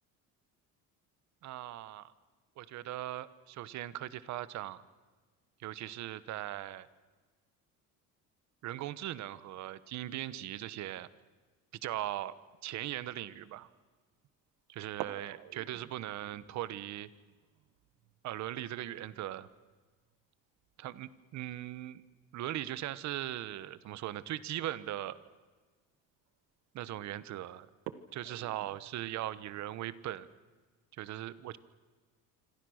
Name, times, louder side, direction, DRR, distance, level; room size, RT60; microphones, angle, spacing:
voice 1, 1.4-2.1 2.6-4.8 5.6-6.9 8.6-11.1 11.8-12.3 12.6-13.7 14.7-17.1 18.2-19.5 20.8-22.0 22.3-25.2 26.7-27.7 28.1-30.3 31.0-31.6, right 13 dB, 55° right, 16 dB, 1.1 m, -39 dB
sound 1, 13.3-13.7 14.8-21.3 21.6-21.7 22.0-22.4 23.4-23.6 24.2-24.3 24.8-24.9 25.3-25.6 26.3-26.6 27.0-27.1 27.7-30.0, right 12 dB, 75° right, 1.5 m, -50 dB
27.0 x 26.5 x 6.4 m, 1.4 s
cardioid pair, 160°, 35 cm